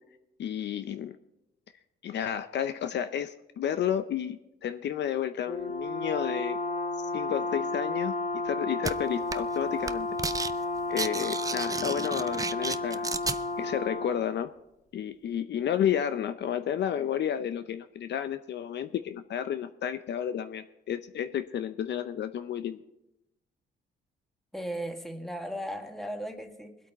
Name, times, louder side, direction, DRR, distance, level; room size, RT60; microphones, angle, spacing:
voice 1, 0.4-1.2 2.0-6.6 7.1-8.1 8.4-10.1 10.9-13.1 13.6-14.5 14.9-22.8, left 9 dB, 60° left, 10 dB, 0.6 m, -31 dB
Brass instrument, 5.5-14.2, left 2 dB, 35° left, 2.0 m, -32 dB
sound 1, 8.8-8.9 9.3-9.6 9.8-10.5 10.8-13.4, right 4 dB, 15° right, 0.4 m, -32 dB
voice 2, 24.5-26.8, equal, ahead, 4 dB, 1.7 m, -36 dB
21.0 x 8.4 x 4.1 m, 0.88 s
cardioid pair, 90°, 20 cm